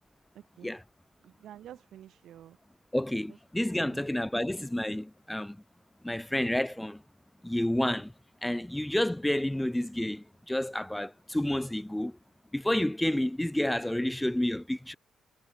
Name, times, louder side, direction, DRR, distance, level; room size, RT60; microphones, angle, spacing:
voice 1, 0.3-0.7 1.2-2.6 3.8-4.1, right 11 dB, 75° right, 1.1 m, -49 dB
voice 2, 2.9-5.6 6.0-7.0 7.4-8.1 8.4-12.1 12.5-15.0, left 1 dB, 5° left, 1.4 m, -30 dB
cardioid pair, 90°, 0 cm